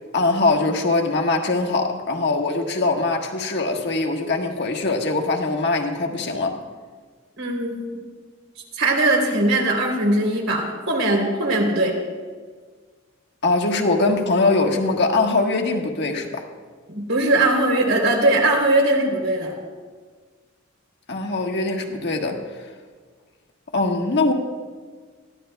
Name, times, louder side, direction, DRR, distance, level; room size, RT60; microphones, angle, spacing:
voice 1, 0.1-6.6 13.4-16.4 21.1-22.4 23.7-24.3, left 3 dB, 60° left, 2 dB, 1.4 m, -22 dB
voice 2, 7.4-8.0 8.7-11.9 16.9-19.5, right 2 dB, 85° right, 0 dB, 3.3 m, -20 dB
21.0 x 14.5 x 2.3 m, 1.5 s
head